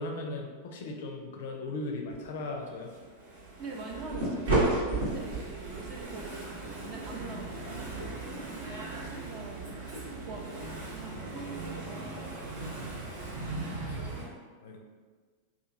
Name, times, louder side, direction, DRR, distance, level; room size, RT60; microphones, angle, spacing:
voice 1, 0.0-2.9 4.9-5.2 12.8-13.4 13.9-14.2 14.6-14.8, left 2 dB, 55° left, 2 dB, 0.4 m, -38 dB
Engine / Mechanisms, 2.1-14.2, right 2 dB, 80° right, 1.4 m, -41 dB
voice 2, 3.6-4.6 5.0-7.9 8.9-9.8 10.2-10.5 10.9-12.1, right 3 dB, 40° right, 1 dB, 0.4 m, -44 dB
sound 1, 3.9-11.2, right 2 dB, 60° right, 0.9 m, -34 dB
2.8 x 2.4 x 2.4 m, 1.5 s
figure-of-eight pair, 90°, 0 cm